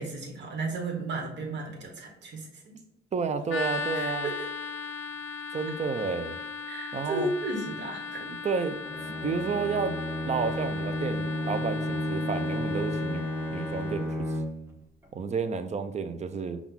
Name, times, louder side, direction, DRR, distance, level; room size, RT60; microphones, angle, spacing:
voice 1, 0.0-2.5 3.9-4.5 6.7-8.2, right 2 dB, 65° right, 1 dB, 1.3 m, -34 dB
voice 2, 3.1-4.3 5.5-6.4 6.9-7.3 8.1-8.8 9.2-9.9 10.2-14.3 15.1-16.6, right 5 dB, 35° right, 10 dB, 0.5 m, -31 dB
sound 1, 3.5-14.1, left 4 dB, 75° left, 0.5 m, -37 dB
Bowed string instrument, 8.8-14.8, left 1 dB, 10° right, 0.9 m, -32 dB
5.6 x 2.4 x 3.6 m, 0.88 s
cardioid pair, 90°, 20 cm